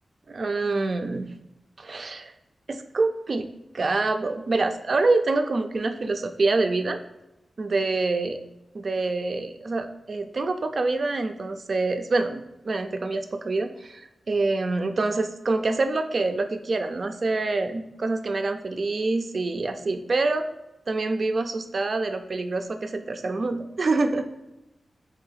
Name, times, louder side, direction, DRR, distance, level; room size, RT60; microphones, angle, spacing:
voice 1, 0.3-1.3 1.8-2.3 2.7-3.5 3.7-7.0 7.6-8.4 8.7-20.4 20.9-24.2, right 3 dB, 60° right, 7 dB, 0.3 m, -26 dB
3.0 x 2.7 x 4.0 m, 0.95 s
cardioid pair, 60°, 0 cm